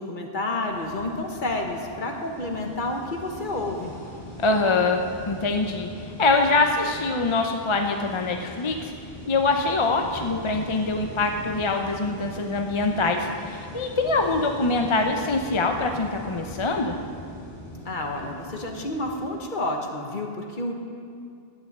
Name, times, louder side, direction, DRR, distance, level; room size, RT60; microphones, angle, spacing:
voice 1, 0.0-3.9 17.8-20.7, left 2 dB, 50° left, 2 dB, 1.4 m, -30 dB
sound 1, 0.7-19.3, left 1 dB, 70° left, 3.6 m, -41 dB
voice 2, 4.4-5.0 5.3-8.9 9.3-17.0, left 3 dB, 35° left, 4 dB, 0.6 m, -24 dB
11.0 x 9.0 x 7.3 m, 2.3 s
omnidirectional pair, 1.1 m